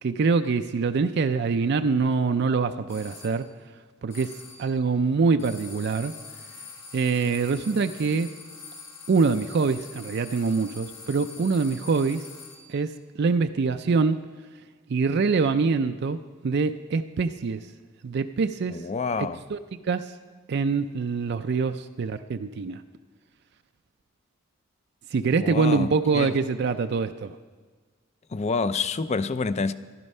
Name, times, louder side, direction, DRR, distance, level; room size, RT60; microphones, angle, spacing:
voice 1, 0.0-3.5 4.0-4.3 4.6-6.1 6.9-8.3 9.1-12.3 12.7-14.2 14.9-17.7 18.0-18.8 19.5-19.6 19.8-20.1 20.5-22.8 25.1-27.4, right 4 dB, 55° right, 0.4 m, -24 dB
sound 1, 2.9-3.4 4.1-4.7 5.4-12.8, left 4 dB, 85° left, 2.8 m, -44 dB
voice 2, 18.7-19.4 25.4-26.4 28.3-29.7, left 4 dB, 35° left, 0.4 m, -28 dB
14.0 x 11.0 x 5.5 m
head